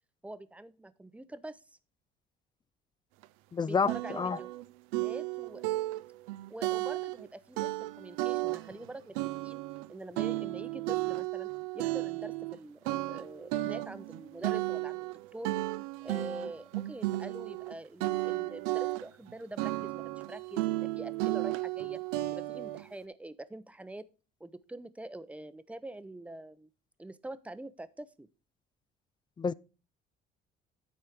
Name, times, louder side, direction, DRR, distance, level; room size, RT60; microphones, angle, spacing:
voice 1, 0.2-1.6 3.6-4.5 5.0-5.6 6.5-9.1 9.4-9.6 9.9-11.5 11.7-15.5 16.0-22.0 22.3-24.1 24.4-26.7 27.0-28.3, right 1 dB, 5° right, 0.7 m, -45 dB
sound 1, 3.2-3.3 3.9-4.6 4.9-7.3 7.6-8.9 9.1-12.6 12.8-17.7 18.0-19.3 19.6-22.8, right 18 dB, 85° right, 0.4 m, -34 dB
voice 2, 3.5-4.4 29.4-29.5, left 5 dB, 20° left, 0.3 m, -29 dB
9.8 x 4.4 x 5.0 m
supercardioid pair, 70°, 21 cm